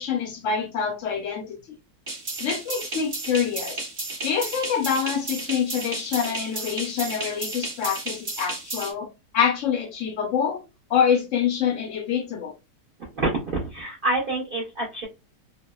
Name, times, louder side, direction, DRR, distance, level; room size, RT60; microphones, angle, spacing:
voice 1, 0.0-1.8 2.4-3.8 4.2-9.1 9.3-10.6 10.9-12.5, left 7 dB, 70° left, 0.7 m, -26 dB
sound 1, 2.1-8.9, right 2 dB, 40° right, 1.0 m, -33 dB
voice 2, 13.0-15.1, right 2 dB, 55° right, 0.6 m, -27 dB
2.8 x 2.0 x 2.2 m
omnidirectional pair, 1.8 m